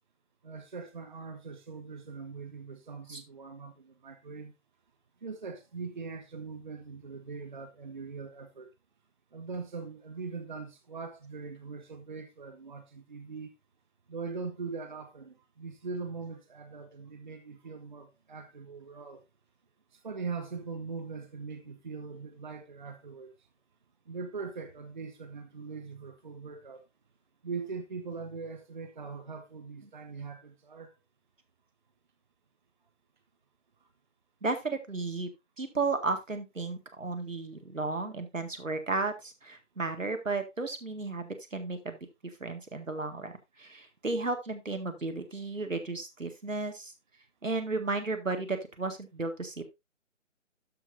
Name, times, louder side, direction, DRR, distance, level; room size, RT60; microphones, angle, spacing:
voice 1, 0.4-4.5 5.2-8.7 9.3-13.5 14.1-19.2 19.9-23.3 24.1-26.8 27.4-30.9, right 4 dB, 35° right, 0.9 m, -41 dB
voice 2, 34.4-35.3 35.6-42.0 42.4-43.3 43.6-46.9 47.4-49.7, right 3 dB, 75° right, 1.9 m, -34 dB
12.5 x 6.0 x 2.6 m
figure-of-eight pair, 150°, 39 cm